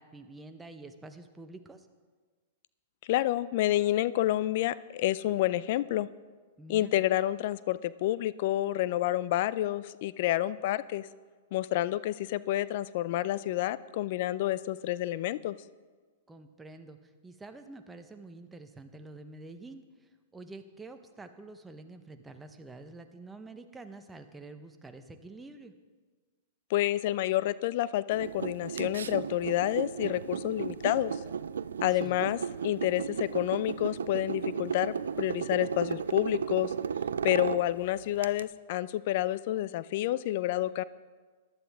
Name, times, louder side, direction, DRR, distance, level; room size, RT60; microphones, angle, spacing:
voice 1, 0.0-1.9 6.6-6.9 16.3-25.7 31.9-32.2, right 2 dB, 10° right, 7 dB, 0.9 m, -48 dB
voice 2, 3.1-6.1 6.7-11.1 11.5-15.6 26.7-31.2 31.8-36.7 37.2-40.8, left 14 dB, 55° left, 18 dB, 0.4 m, -29 dB
sound 1, 28.1-38.4, right 6 dB, 85° right, 0.3 m, -34 dB
14.5 x 11.0 x 3.5 m, 1.4 s
hypercardioid pair, 115°, 0 cm